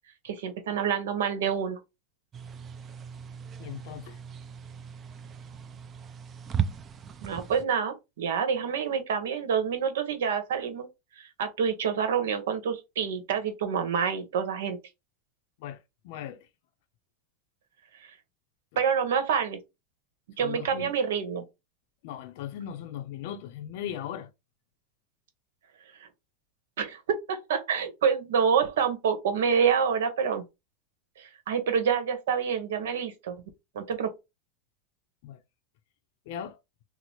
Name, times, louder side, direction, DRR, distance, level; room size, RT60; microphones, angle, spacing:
voice 1, 0.2-1.8 7.2-10.9 11.2-14.8 18.8-19.6 20.4-21.4 26.8-30.4 31.2-33.4 33.7-34.1, right 7 dB, 90° right, 0.9 m, -27 dB
sound 1, 2.3-7.6, right 7 dB, 25° right, 0.3 m, -37 dB
voice 2, 3.6-4.2 15.6-15.8 16.0-16.5 20.4-20.9 22.0-24.3 35.2-35.4 36.3-36.6, left 10 dB, 60° left, 0.5 m, -38 dB
3.0 x 2.0 x 4.1 m
supercardioid pair, 145°, 0 cm